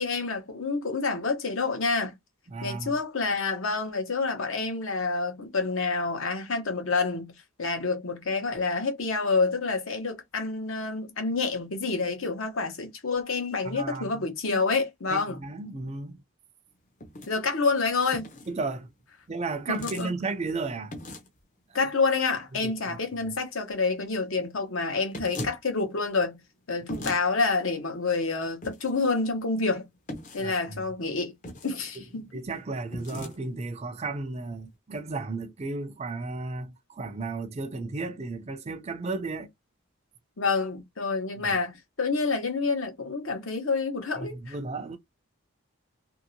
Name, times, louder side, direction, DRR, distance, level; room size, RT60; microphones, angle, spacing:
voice 1, 0.0-2.1 2.6-15.4 17.3-18.3 19.7-20.1 21.7-26.4 26.7-29.9 30.3-31.3 31.6-32.2 40.4-44.6, left 4 dB, 70° left, 1.0 m, -28 dB
voice 2, 2.5-2.9 13.6-14.1 14.5-14.6 15.1-16.2 18.5-18.9 19.3-20.9 21.7-21.8 22.6-22.7 30.4-30.8 32.0-32.1 32.3-39.5 41.4-41.6 44.2-45.0, right 3 dB, 30° right, 0.4 m, -34 dB
sound 1, 17.0-17.3 18.1-18.5 19.7-20.1 20.9-21.4 25.1-25.6 26.9-27.2 28.6-29.1 30.1-30.5 31.4-32.0 32.9-33.4, left 1 dB, 35° left, 0.7 m, -38 dB
2.8 x 2.8 x 2.7 m
head